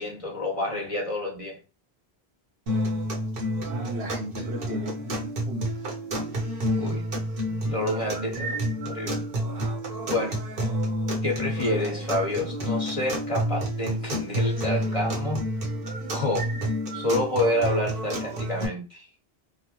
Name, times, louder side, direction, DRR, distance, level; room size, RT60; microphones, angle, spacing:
voice 1, 0.0-1.6 6.8-7.0 7.6-9.2 10.1-10.4 11.2-15.4 16.1-16.5 16.9-19.1, left 1 dB, 35° left, 1.1 m, -28 dB
sound 1, 2.7-18.7, equal, 65° right, 1.0 m, -29 dB
voice 2, 3.7-5.7, right 2 dB, 90° right, 1.0 m, -35 dB
3.0 x 2.0 x 2.9 m
omnidirectional pair, 1.0 m